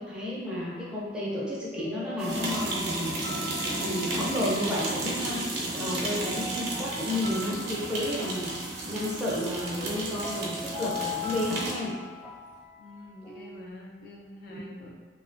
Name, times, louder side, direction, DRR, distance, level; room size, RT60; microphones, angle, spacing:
voice 1, 0.0-3.1 3.8-5.4 5.7-11.9 14.5-14.6, left 1 dB, 5° right, -7 dB, 0.5 m, -32 dB
sound 1, 0.5-13.7, left 3 dB, 30° left, 0.7 m, -42 dB
sound 2, 2.2-11.9, right 2 dB, 60° right, 0.5 m, -33 dB
voice 2, 12.8-14.9, left 2 dB, 55° left, -2 dB, 0.3 m, -46 dB
2.8 x 2.1 x 2.5 m, 1.4 s
head